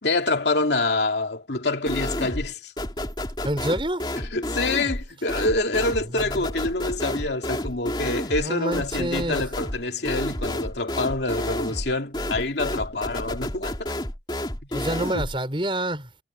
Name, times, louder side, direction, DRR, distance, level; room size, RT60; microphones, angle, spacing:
voice 1, 0.0-2.7 4.3-13.9 15.1-15.2, left 2 dB, 80° left, 2.5 m, -26 dB
sound 1, 1.9-2.5 2.8-15.4, left 1 dB, 25° left, 3.1 m, -30 dB
voice 2, 3.4-4.1 6.1-6.4 8.4-9.4 14.7-16.1, right 1 dB, 30° right, 6.6 m, -28 dB
head